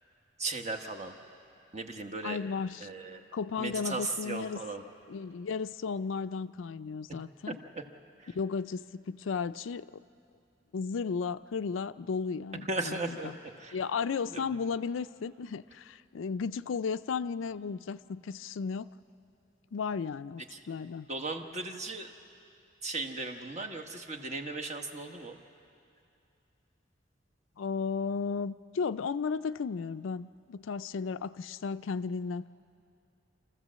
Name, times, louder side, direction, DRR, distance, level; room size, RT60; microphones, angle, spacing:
voice 1, 0.4-1.1 1.7-2.4 2.8-3.2 3.6-4.8 7.5-7.6 8.2-8.3 12.7-13.3 13.6-13.8 14.3-14.6 20.5-20.6 21.1-22.1 22.8-25.4, right 3 dB, 35° right, 5 dB, 1.2 m, -36 dB
voice 2, 2.2-2.9 3.3-4.6 5.1-7.6 8.3-9.9 10.7-13.3 13.7-18.9 19.7-20.4 20.7-21.1 27.6-32.5, left 5 dB, 85° left, 13 dB, 0.4 m, -34 dB
27.0 x 14.5 x 7.5 m, 2.6 s
head